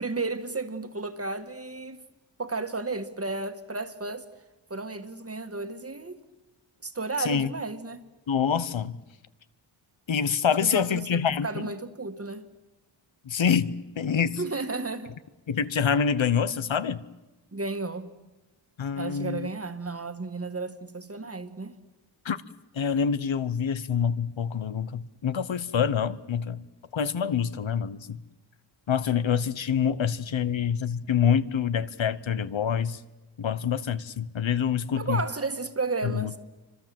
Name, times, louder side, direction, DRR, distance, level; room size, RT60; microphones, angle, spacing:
voice 1, 0.0-2.0 2.4-4.3 4.7-6.2 6.8-8.0 10.6-12.5 14.4-15.1 17.5-18.1 19.0-21.7 35.0-36.4, right 3 dB, 30° right, 1.7 m, -33 dB
voice 2, 7.2-7.5 8.3-9.0 10.1-11.7 13.2-14.4 15.5-17.0 18.8-19.5 22.2-22.4 22.7-26.6 26.9-28.2 28.9-33.0 33.4-35.2 36.0-36.3, left 7 dB, 65° left, 1.1 m, -26 dB
29.0 x 25.5 x 7.7 m
wide cardioid pair, 120°, 49 cm